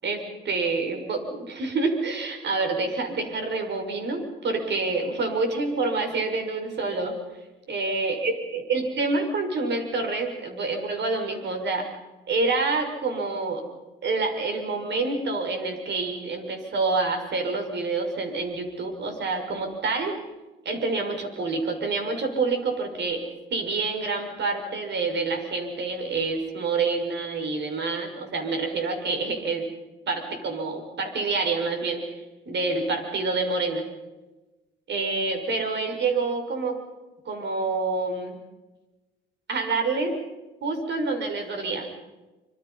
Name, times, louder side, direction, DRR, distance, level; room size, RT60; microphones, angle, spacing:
voice 1, 0.0-7.1 7.7-11.9 12.3-13.6 14.0-20.1 20.6-23.2 23.5-29.7 30.1-32.0 32.5-33.8 34.9-36.8 37.2-38.4 39.5-40.2 40.6-41.9, right 3 dB, 60° right, 5 dB, 6.2 m, -27 dB
27.0 x 26.5 x 5.7 m, 1.2 s
cardioid pair, 90°, 20 cm